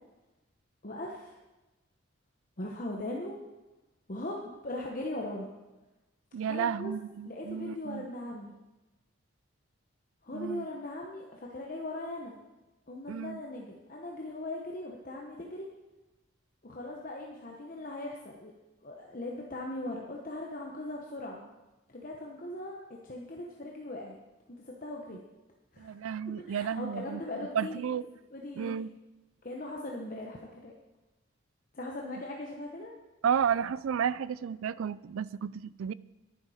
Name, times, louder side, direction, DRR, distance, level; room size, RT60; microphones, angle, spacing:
voice 1, 0.8-1.4 2.6-3.4 4.1-5.5 6.5-6.9 7.2-8.5 10.2-12.4 12.9-15.7 16.6-18.5 18.8-21.4 21.9-24.1 24.5-25.2 25.7-25.9 26.5-27.8 28.3-28.7 29.4-30.7 31.7-32.9, left 1 dB, 40° left, -1 dB, 1.0 m, -39 dB
voice 2, 6.3-8.0 10.3-10.7 13.1-13.4 25.8-27.2 27.6-28.0 28.6-28.9 33.2-35.9, right 7 dB, 80° right, 19 dB, 0.4 m, -32 dB
10.5 x 10.5 x 4.9 m, 1.1 s
head